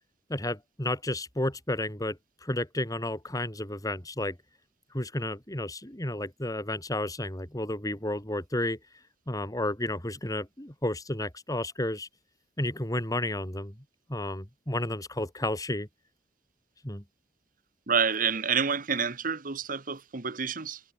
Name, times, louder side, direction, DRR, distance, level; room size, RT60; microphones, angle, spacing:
voice 1, 0.3-4.4 4.9-8.8 9.3-12.1 12.6-13.8 14.1-15.9 16.8-17.0, left 1 dB, 20° left, 3.9 m, -32 dB
voice 2, 17.9-20.8, right 6 dB, 50° right, 1.3 m, -28 dB
head